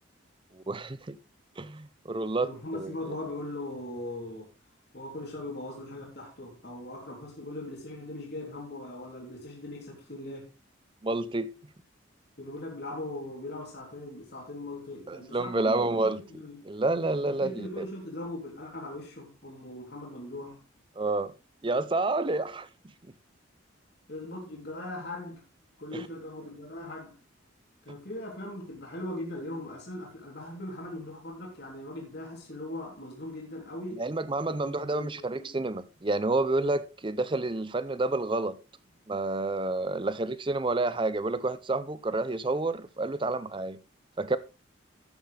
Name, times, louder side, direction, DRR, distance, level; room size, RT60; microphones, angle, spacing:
voice 1, 0.5-1.2 1.6-3.2 11.0-11.6 15.1-16.2 16.7-17.8 21.0-21.3 21.6-22.7 25.9-26.1 34.0-38.6 39.1-43.8 44.2-44.4, right 2 dB, 25° right, 0.5 m, -29 dB
voice 2, 2.4-4.5 4.9-10.5 12.4-16.6 17.2-20.6 24.1-25.4 25.8-27.2 27.8-34.1 34.4-35.5, left 1 dB, 55° left, 3.2 m, -40 dB
13.5 x 9.2 x 3.3 m
head